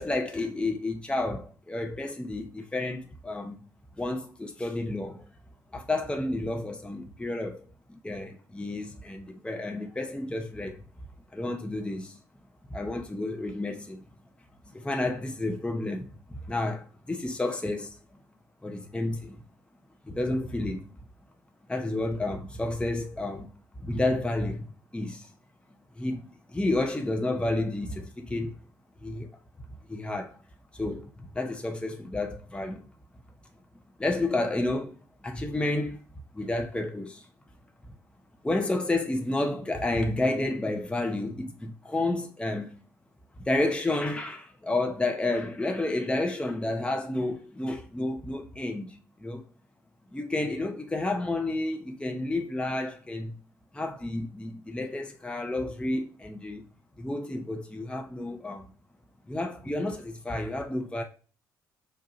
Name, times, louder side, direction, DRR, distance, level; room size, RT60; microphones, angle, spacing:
voice 1, 0.0-3.6 4.0-5.2 5.7-10.8 11.3-12.2 12.7-14.0 14.6-17.9 18.6-19.4 20.0-20.9 21.7-23.5 23.8-24.7 24.9-25.3 26.0-28.5 29.0-29.4 29.9-30.4 30.7-32.8 34.0-36.0 36.3-37.3 38.4-42.7 43.5-49.4 50.1-53.4 53.7-56.6 57.0-58.6 59.3-61.0, left 2 dB, 10° left, 0.8 m, -31 dB
4.8 x 2.5 x 2.8 m
hypercardioid pair, 50°, 10 cm